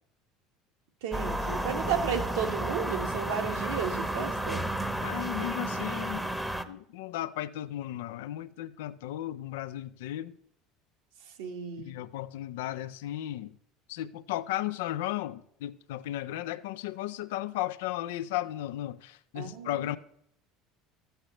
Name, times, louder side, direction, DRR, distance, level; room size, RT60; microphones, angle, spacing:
voice 1, 1.0-4.7 11.4-11.9 19.3-19.9, right 7 dB, 80° right, 1.4 m, -33 dB
sound 1, 1.1-6.6, right 1 dB, 5° right, 0.8 m, -32 dB
voice 2, 5.0-6.4 6.7-10.3 11.8-13.5 13.9-20.0, left 14 dB, 80° left, 0.4 m, -35 dB
13.0 x 7.9 x 3.0 m
supercardioid pair, 85°, 0 cm